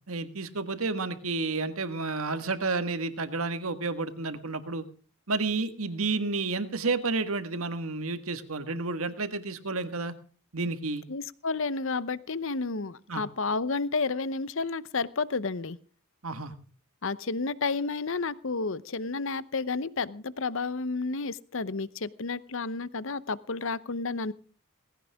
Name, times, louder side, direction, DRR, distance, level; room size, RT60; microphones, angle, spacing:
voice 1, 0.1-4.8 5.3-10.1 10.5-11.0 13.1-13.2 16.2-16.5, right 3 dB, 70° right, 10 dB, 1.7 m, -31 dB
voice 2, 11.1-15.8 17.0-24.3, left 4 dB, 60° left, 17 dB, 0.8 m, -31 dB
19.0 x 16.5 x 3.5 m, 0.39 s
head